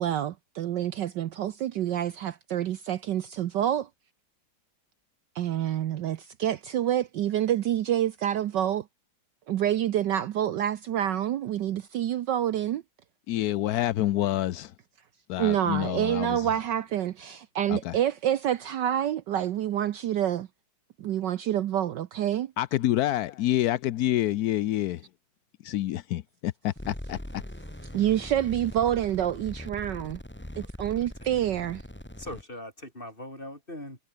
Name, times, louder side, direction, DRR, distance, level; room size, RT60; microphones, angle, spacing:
voice 1, 0.0-3.9 5.3-8.8 9.5-12.8 15.4-20.5 21.0-22.5 27.9-30.2 30.6-31.8, right 11 dB, 65° right, 1.3 m, -27 dB
voice 2, 13.3-14.7 15.3-16.5 17.7-18.0 22.6-25.0 25.6-27.2, left 14 dB, 75° left, 0.9 m, -27 dB
sound 1, 26.8-32.4, left 1 dB, 5° left, 2.1 m, -41 dB
voice 3, 32.2-34.0, left 1 dB, 25° left, 8.2 m, -41 dB
omnidirectional pair, 2.2 m